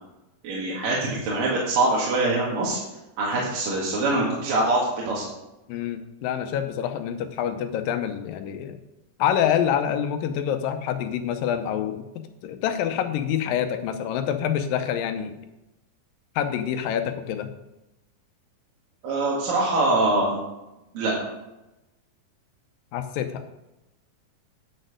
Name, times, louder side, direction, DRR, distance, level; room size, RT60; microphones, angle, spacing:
voice 1, 0.4-2.8 3.2-5.2 19.0-20.4 21.0-21.1, right 2 dB, 75° right, -5 dB, 3.5 m, -23 dB
voice 2, 5.7-8.8 9.2-12.0 12.4-15.4 16.4-17.5 22.9-23.4, left 9 dB, 85° left, 8 dB, 2.5 m, -26 dB
10.5 x 6.6 x 6.4 m, 0.97 s
omnidirectional pair, 4.0 m